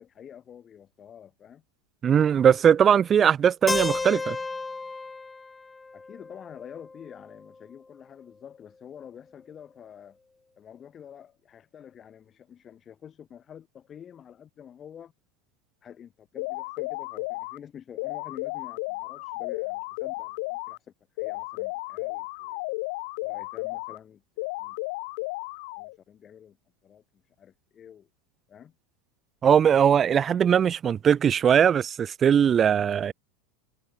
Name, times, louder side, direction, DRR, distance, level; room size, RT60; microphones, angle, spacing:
voice 1, 0.0-1.6 5.9-10.2 10.6-15.1 15.8-22.6 23.2-24.8 25.8-26.6 26.8-28.1 28.5-28.7, left 9 dB, 30° left, 4.0 m, -48 dB
voice 2, 2.0-4.4 29.4-33.1, right 8 dB, 30° right, 0.6 m, -20 dB
Keyboard (musical), 3.7-7.6, left 3 dB, 10° left, 1.9 m, -33 dB
sound 1, 16.4-17.6 18.0-20.8 21.2-24.0 24.4-26.0, left 26 dB, 65° left, 2.5 m, -33 dB
supercardioid pair, 120°, 0 cm